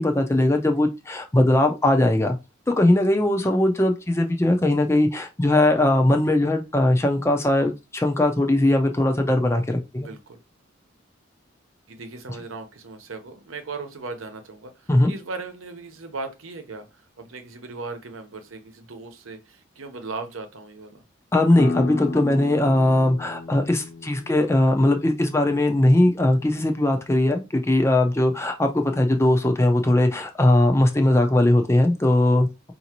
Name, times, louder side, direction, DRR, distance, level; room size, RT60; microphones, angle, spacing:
voice 1, 0.0-2.4 2.8-10.1 14.9-15.1 21.3-32.7, left 1 dB, 15° left, 0.4 m, -20 dB
voice 2, 10.0-10.4 11.9-21.0, right 3 dB, 85° right, 0.9 m, -37 dB
sound 1, 21.6-26.9, left 3 dB, 85° left, 0.6 m, -35 dB
4.9 x 2.7 x 2.9 m
head